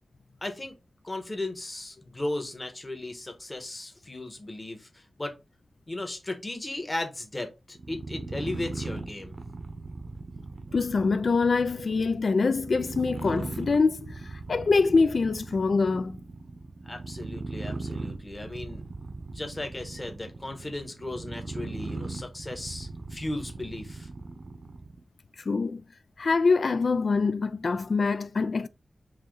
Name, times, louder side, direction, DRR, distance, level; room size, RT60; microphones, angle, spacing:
voice 1, 0.4-0.7 1.0-5.3 5.9-9.3 16.8-18.9 19.3-24.1, left 2 dB, 30° left, 1.3 m, -36 dB
sound 1, 7.8-25.0, right 3 dB, 65° right, 0.8 m, -39 dB
voice 2, 10.7-16.2 25.5-25.8 26.2-28.7, left 4 dB, 70° left, 0.3 m, -24 dB
4.7 x 2.8 x 3.7 m
wide cardioid pair, 90°, 0 cm